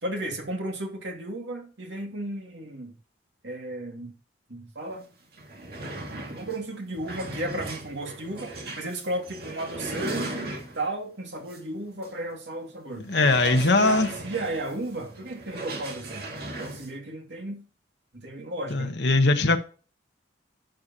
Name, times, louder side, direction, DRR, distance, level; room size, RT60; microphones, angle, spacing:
voice 1, 0.0-2.9 3.4-4.1 4.5-5.1 6.3-13.1 13.5-16.3 16.6-17.6 18.1-19.0, right 1 dB, 70° right, 2.5 m, -34 dB
sound 1, 4.9-5.0 5.3-11.0 11.5-11.6 12.0-12.1 13.1-16.9, right 2 dB, 50° right, 2.2 m, -37 dB
voice 2, 13.0-14.1 18.7-19.6, left 2 dB, 65° left, 1.2 m, -21 dB
11.5 x 6.8 x 3.0 m
head